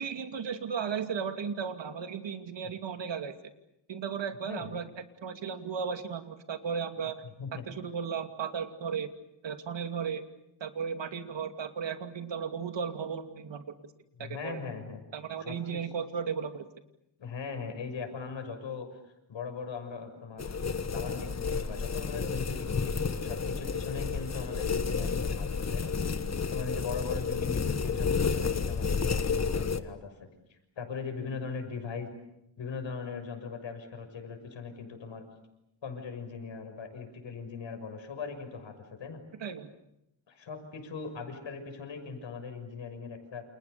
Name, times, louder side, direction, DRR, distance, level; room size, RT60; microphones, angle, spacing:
voice 1, 0.0-3.4 3.9-4.9 5.2-7.2 7.7-9.1 9.4-10.2 10.6-13.7 14.2-14.6 15.1-16.6 39.4-39.7, right 6 dB, 70° right, 7 dB, 2.7 m, -35 dB
voice 2, 14.2-15.0 15.4-15.8 17.2-18.9 19.3-20.5 20.9-25.9 26.5-30.1 30.5-32.1 32.6-35.2 35.8-39.2 40.3-43.4, left 5 dB, 75° left, 6 dB, 6.6 m, -39 dB
sound 1, 20.4-29.8, left 5 dB, 35° left, 1.5 m, -31 dB
29.5 x 28.5 x 6.9 m, 0.83 s
wide cardioid pair, 105°, 46 cm